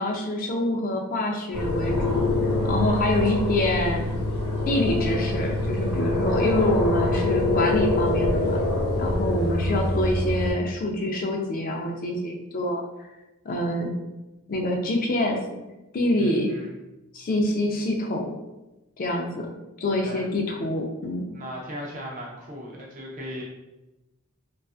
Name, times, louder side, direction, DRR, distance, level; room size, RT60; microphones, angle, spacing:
voice 1, 0.0-2.3 2.6-4.0 4.7-8.6 9.0-12.8 13.5-13.9 14.5-15.4 15.9-16.5 17.1-18.3 19.0-19.5 19.8-21.3, left 1 dB, 40° left, 2 dB, 0.3 m, -26 dB
sound 1, 1.5-10.5, left 2 dB, 75° left, 0.8 m, -25 dB
voice 2, 2.8-3.6 16.2-16.8 19.9-20.3 21.3-23.4, equal, 35° right, -2 dB, 0.4 m, -38 dB
2.4 x 2.3 x 2.3 m, 1.0 s
head